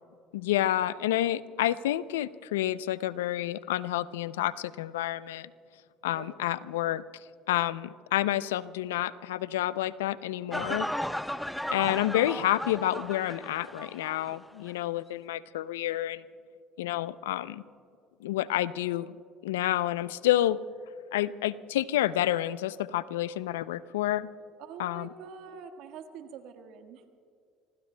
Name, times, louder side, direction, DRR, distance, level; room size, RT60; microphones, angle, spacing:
voice 1, 0.3-5.5 6.0-7.0 7.5-10.9 11.7-16.2 16.8-17.6 18.2-19.2 19.4-20.6 21.1-24.3 24.8-25.1, left 13 dB, 90° left, 17 dB, 0.4 m, -29 dB
sound 1, 10.5-14.4 14.7-14.8, equal, 5° left, 0.6 m, -35 dB
voice 2, 11.8-12.1 24.6-27.0, right 6 dB, 70° right, 6 dB, 1.5 m, -46 dB
27.0 x 23.0 x 2.2 m, 2.3 s
hypercardioid pair, 75°, 0 cm